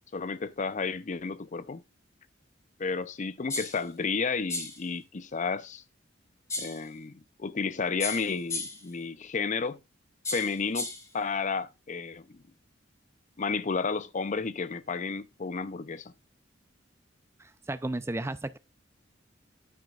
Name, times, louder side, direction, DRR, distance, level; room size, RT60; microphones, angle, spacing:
voice 1, 0.1-1.8 2.8-5.8 6.6-9.8 10.3-12.4 13.4-16.1, left 4 dB, 40° left, 0.5 m, -32 dB
sound 1, 3.5-3.8 4.5-4.8 6.5-6.8 8.0-8.9 10.2-11.1, left 3 dB, 15° left, 1.3 m, -35 dB
voice 2, 17.4-18.6, right 2 dB, 15° right, 0.4 m, -34 dB
9.4 x 9.1 x 2.4 m
head